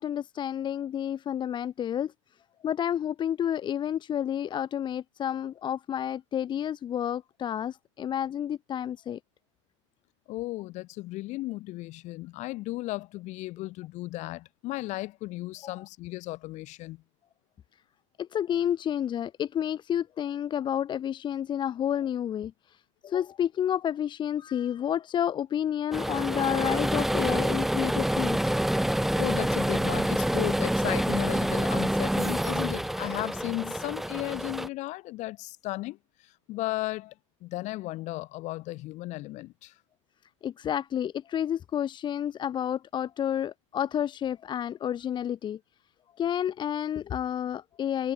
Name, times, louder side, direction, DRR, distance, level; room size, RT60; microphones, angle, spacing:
voice 1, 0.0-2.1 2.6-9.2 18.2-28.6 40.4-45.6 46.2-48.1, left 10 dB, 30° left, 1.4 m, -30 dB
voice 2, 10.3-17.0 29.2-37.1 37.4-39.8, left 19 dB, 45° left, 5.4 m, -35 dB
sound 1, 25.9-34.7, right 1 dB, ahead, 1.1 m, -27 dB
hypercardioid pair, 120°, 17 cm